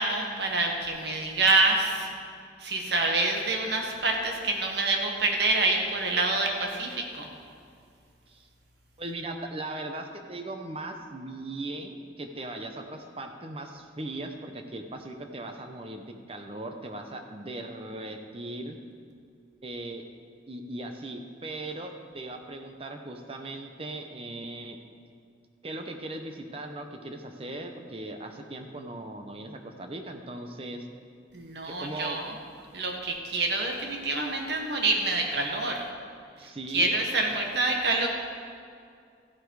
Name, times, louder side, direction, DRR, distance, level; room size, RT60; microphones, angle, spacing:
voice 1, 0.0-2.1 2.6-7.3 31.3-32.3 32.7-35.9 36.7-38.1, right 2 dB, 65° right, 2 dB, 1.5 m, -27 dB
voice 2, 9.0-18.8 19.6-20.0 20.5-24.8 25.6-30.9 31.6-32.2 36.4-37.0, right 2 dB, 30° right, 5 dB, 0.8 m, -38 dB
14.0 x 8.1 x 4.8 m, 2.3 s
head